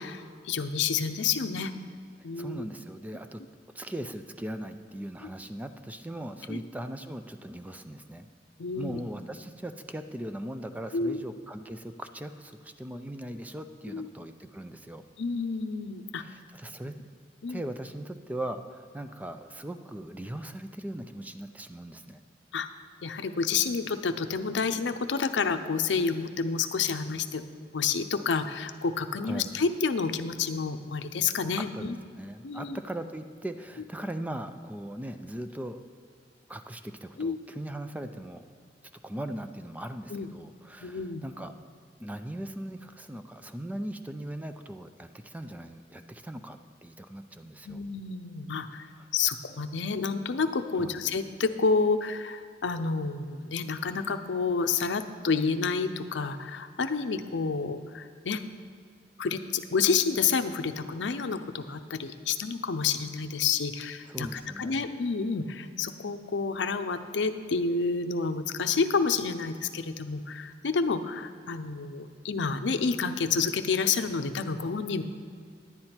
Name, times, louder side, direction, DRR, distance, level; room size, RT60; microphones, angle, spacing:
voice 1, 0.0-1.7 2.2-2.7 6.5-6.6 8.6-9.0 10.9-11.2 13.9-14.1 15.2-16.2 17.4-17.6 22.5-22.7 23.0-27.4 27.7-31.9 32.4-32.8 37.2-37.4 40.1-40.3 40.8-41.2 47.7-48.9 49.1-58.4 59.2-75.0, left 5 dB, 85° left, 9 dB, 0.6 m, -29 dB
voice 2, 2.2-3.4 3.7-8.3 8.7-15.0 16.2-17.0 17.5-22.2 29.2-29.5 31.6-35.8 36.5-38.5 39.0-41.5 42.0-47.8 49.0-49.1 50.7-51.0 64.1-64.8, right 1 dB, 10° right, 8 dB, 0.4 m, -39 dB
10.5 x 9.6 x 4.4 m, 2.2 s
head